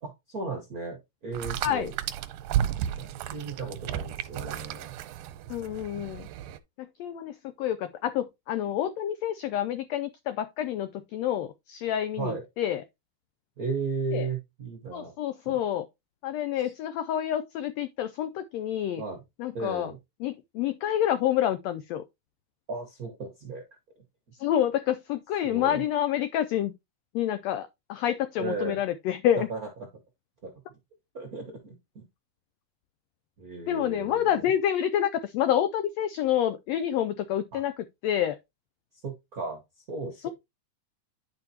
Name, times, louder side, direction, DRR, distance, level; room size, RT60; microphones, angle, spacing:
voice 1, 0.0-2.0 3.0-4.9 12.2-12.4 13.6-15.1 15.4-15.6 16.6-16.7 19.0-19.2 19.5-20.0 22.7-23.6 25.4-25.9 28.4-28.8 29.4-29.9 30.4-30.5 31.1-32.1 33.4-34.5 37.5-37.6 39.0-40.3, right 4 dB, 60° right, 0.9 m, -35 dB
sound 1, 1.3-6.6, right 10 dB, 90° right, 2.1 m, -33 dB
voice 2, 5.5-6.3 6.8-12.8 14.1-14.3 14.9-15.9 16.2-19.0 19.4-19.9 20.2-22.0 24.4-26.7 27.1-29.5 33.7-38.4 40.2-40.3, left 10 dB, 85° left, 1.5 m, -28 dB
10.5 x 4.9 x 2.8 m
omnidirectional pair, 3.6 m